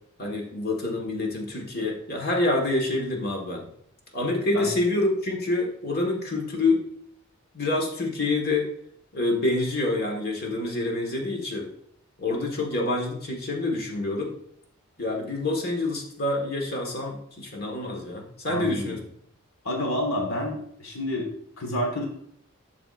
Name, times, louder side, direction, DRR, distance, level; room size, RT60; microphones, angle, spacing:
voice 1, 0.2-3.7 4.1-6.8 7.5-8.7 9.1-11.7 12.2-14.3 15.0-19.0, left 2 dB, 45° left, 1 dB, 1.5 m, -27 dB
voice 2, 18.5-19.0 19.6-22.0, left 1 dB, 70° left, 2 dB, 1.3 m, -29 dB
13.0 x 4.8 x 2.5 m, 0.68 s
head